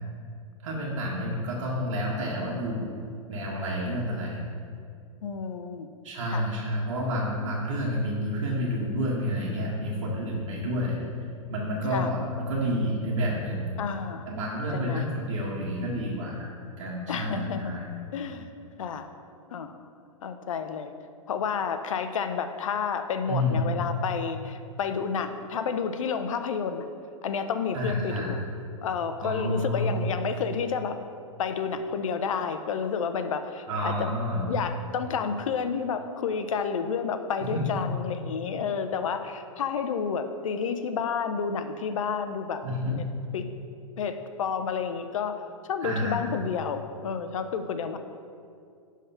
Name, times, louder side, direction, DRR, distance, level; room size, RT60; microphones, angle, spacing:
voice 1, 0.6-3.0 3.3-4.4 6.0-11.0 11.5-13.7 14.3-17.9 23.3-23.7 27.7-28.3 29.2-29.9 33.7-34.5 37.4-37.9 42.6-43.0 45.8-46.2, equal, 60° right, -4 dB, 1.6 m, -29 dB
voice 2, 5.2-5.9 6.3-6.5 11.9-12.1 13.8-14.3 14.7-15.0 17.1-17.7 18.1-18.5 18.8-19.1 19.5-19.8 20.2-20.9 21.3-26.8 27.2-28.4 28.8-31.0 31.4-43.1 43.3-43.5 44.0-45.4 45.7-48.0, left 6 dB, 65° left, 9 dB, 0.7 m, -30 dB
10.5 x 3.7 x 5.6 m, 2.4 s
figure-of-eight pair, 105°, 18 cm